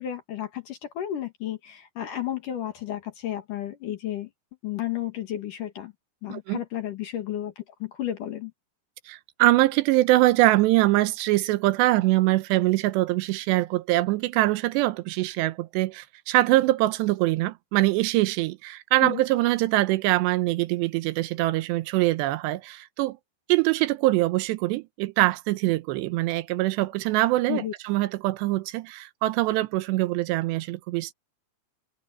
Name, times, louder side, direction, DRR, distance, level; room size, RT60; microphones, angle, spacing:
voice 1, 0.0-4.3 4.6-5.9 6.2-7.5 7.8-8.5 19.0-19.2 27.5-27.7, left 12 dB, 55° left, 2.8 m, -32 dB
voice 2, 6.3-6.6 9.1-23.2 23.5-31.1, right 18 dB, 80° right, 2.9 m, -23 dB
omnidirectional pair, 5.0 m